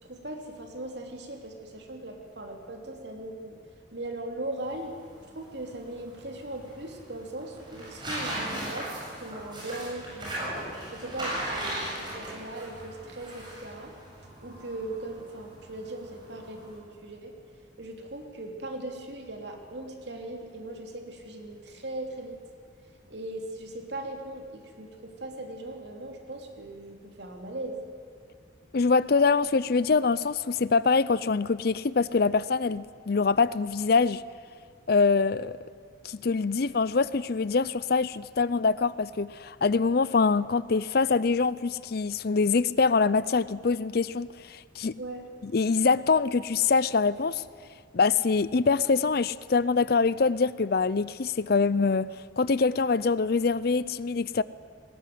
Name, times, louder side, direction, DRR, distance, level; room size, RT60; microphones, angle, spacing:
voice 1, 0.0-3.6 3.9-5.0 5.3-10.5 10.9-13.9 14.4-17.3 17.8-22.4 23.1-27.8 45.0-45.2, right 1 dB, 60° right, 2 dB, 3.2 m, -39 dB
sound 1, 4.5-16.8, right 1 dB, 25° right, 7.6 m, -38 dB
voice 2, 28.7-34.2 34.9-35.6 36.0-45.0 45.4-47.4 47.9-52.1 52.4-54.4, left 4 dB, 55° left, 18 dB, 0.5 m, -24 dB
19.5 x 17.5 x 9.4 m, 2.2 s
head